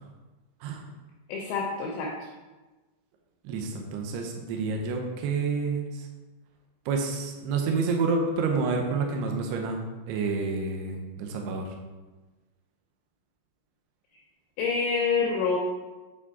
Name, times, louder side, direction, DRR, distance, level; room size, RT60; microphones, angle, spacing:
voice 1, 1.3-2.1 14.6-15.6, left 5 dB, 80° left, -1 dB, 2.6 m, -26 dB
voice 2, 3.4-5.9 6.9-9.8 10.1-11.7, right 4 dB, 85° right, 2 dB, 2.3 m, -28 dB
8.7 x 4.8 x 4.1 m, 1.2 s
omnidirectional pair, 5.9 m